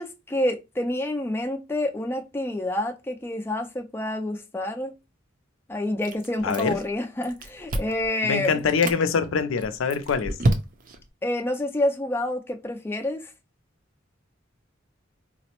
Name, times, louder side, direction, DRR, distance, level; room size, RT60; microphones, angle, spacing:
voice 1, 0.0-4.9 5.7-8.6 11.2-13.3, left 1 dB, 10° left, 0.3 m, -28 dB
Chewing mastication, 6.0-6.9 7.2-8.1 8.6-9.0 9.6-11.0, right 1 dB, 45° right, 0.5 m, -28 dB
voice 2, 6.4-6.8 8.3-10.4, left 5 dB, 90° left, 0.4 m, -24 dB
3.9 x 2.0 x 2.9 m
head